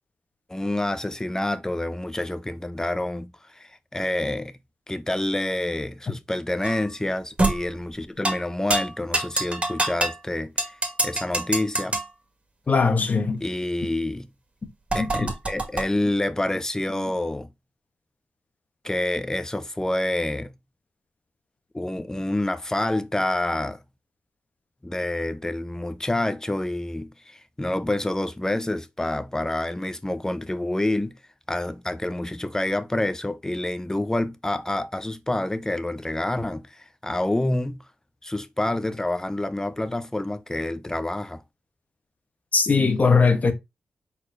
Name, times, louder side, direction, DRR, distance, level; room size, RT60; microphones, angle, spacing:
voice 1, 0.5-4.6 4.9-10.5 11.0-11.9 13.4-14.3 14.9-17.5 18.8-20.5 21.7-23.8 24.8-31.2 31.5-37.8 38.2-41.4, left 1 dB, 15° left, 0.8 m, -28 dB
sound 1, 6.6-6.9 7.4-7.6 8.2-8.4 8.7-10.2 10.6-12.1 14.9-15.8, right 2 dB, 35° right, 1.9 m, -24 dB
voice 2, 12.7-13.4 15.0-15.3 42.5-43.5, left 4 dB, 50° left, 1.1 m, -20 dB
4.6 x 4.2 x 2.6 m
cardioid pair, 55°, 3 cm